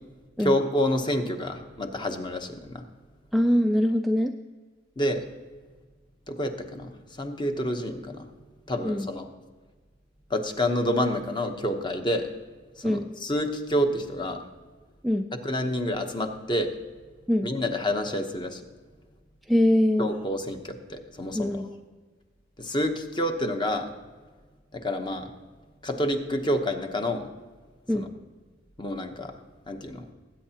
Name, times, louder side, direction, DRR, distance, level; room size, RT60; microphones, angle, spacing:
voice 1, 0.4-2.8 5.0-5.2 6.3-6.9 7.2-8.3 8.7-9.3 10.3-12.3 12.8-14.4 15.4-16.7 17.4-18.6 20.0-21.6 22.6-23.9 24.7-25.3 25.8-27.3 27.9-28.1 28.8-29.3 29.7-30.1, left 1 dB, 25° left, 6 dB, 0.9 m, -28 dB
voice 2, 3.3-4.3 8.8-9.1 12.8-13.1 15.0-15.3 17.3-17.5 19.5-20.1 21.3-21.7 27.9-28.1, left 1 dB, ahead, 5 dB, 0.3 m, -23 dB
20.5 x 8.9 x 2.9 m, 1.4 s
head